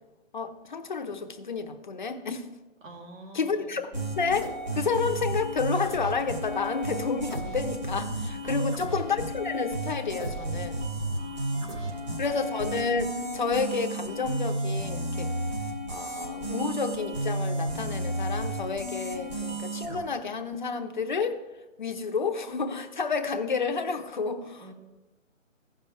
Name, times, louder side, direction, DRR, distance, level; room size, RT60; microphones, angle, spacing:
voice 1, 0.3-2.5 3.3-10.8 12.2-15.3 15.9-21.4 21.8-24.7, left 5 dB, 35° left, 0.7 m, -30 dB
voice 2, 2.8-3.6 8.4-9.1 11.1-12.4 24.6-24.7, right 2 dB, 75° right, 2.9 m, -48 dB
sound 1, 3.9-20.0, right 1 dB, 35° right, 2.5 m, -32 dB
16.5 x 5.6 x 3.3 m
hypercardioid pair, 170°, 39 cm